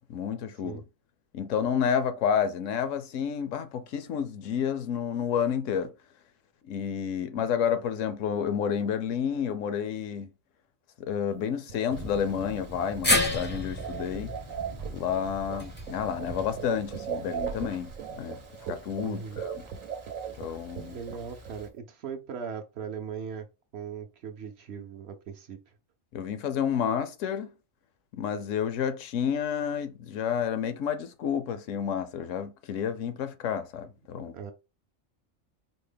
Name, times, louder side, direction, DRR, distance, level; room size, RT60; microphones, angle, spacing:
voice 1, 0.1-0.8 1.3-5.9 6.7-10.3 11.0-14.3 14.9-18.4 18.7-19.6 20.4-21.0 26.1-27.5 28.2-34.3, left 8 dB, 75° left, 0.9 m, -30 dB
sound 1, 11.3-21.8, right 8 dB, 85° right, 1.0 m, -39 dB
Thunder, 11.9-21.7, right 2 dB, 30° right, 0.6 m, -44 dB
sound 2, 13.0-17.3 17.6-17.7 18.9-19.0, left 2 dB, 20° left, 0.3 m, -31 dB
voice 2, 19.0-19.4 20.8-23.5 23.7-25.6 34.3-34.5, right 6 dB, 65° right, 0.8 m, -39 dB
4.3 x 2.0 x 3.3 m
omnidirectional pair, 1.4 m